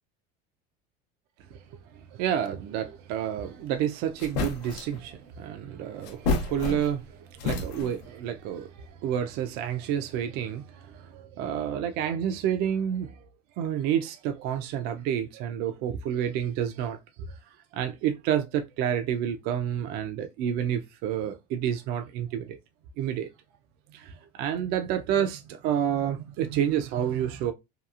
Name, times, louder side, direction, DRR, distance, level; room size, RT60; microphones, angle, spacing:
voice 1, 2.1-13.1 13.6-17.4 17.7-22.6 23.0-23.3 23.9-27.5, right 9 dB, 50° right, 0.4 m, -29 dB
sound 1, 3.7-3.8 4.2-5.0 6.0-7.1 7.4-8.1, left 4 dB, 90° left, 0.7 m, -30 dB
2.8 x 2.3 x 2.3 m
supercardioid pair, 145°, 21 cm